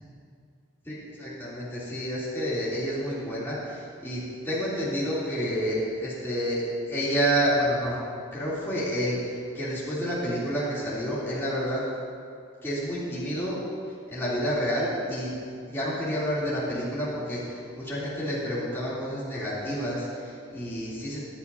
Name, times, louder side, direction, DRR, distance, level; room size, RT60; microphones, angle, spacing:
voice 1, 0.8-8.0 8.3-11.8 12.6-13.6 14.1-15.3 15.7-21.2, equal, 10° left, -10 dB, 3.1 m, -29 dB
23.5 x 8.7 x 2.8 m, 2.4 s
head